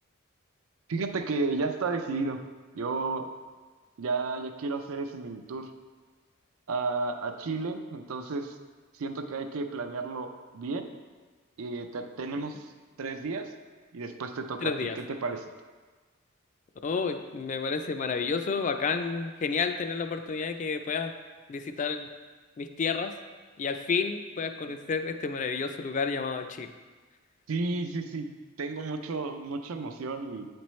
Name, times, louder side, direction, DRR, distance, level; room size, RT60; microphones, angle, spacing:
voice 1, 0.9-2.4 2.7-3.3 4.0-5.7 6.7-8.5 8.9-10.9 11.6-12.7 13.0-13.5 13.9-15.4 27.5-28.3 28.6-30.5, right 3 dB, 90° right, 7 dB, 0.5 m, -32 dB
voice 2, 14.6-15.0 16.8-21.1 21.5-22.1 22.6-23.1 23.6-26.7, left 5 dB, 35° left, 8 dB, 0.3 m, -30 dB
8.1 x 4.4 x 3.1 m, 1.4 s
head